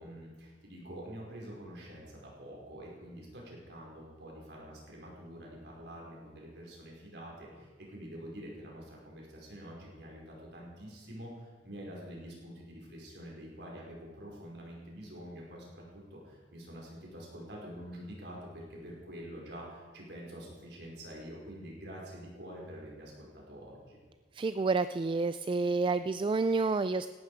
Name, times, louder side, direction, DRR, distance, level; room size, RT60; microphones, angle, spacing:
voice 1, 0.0-24.0, equal, 65° right, -3 dB, 5.0 m, -46 dB
voice 2, 24.3-27.1, right 3 dB, 30° right, 13 dB, 0.3 m, -29 dB
17.0 x 12.5 x 5.0 m, 1.6 s
head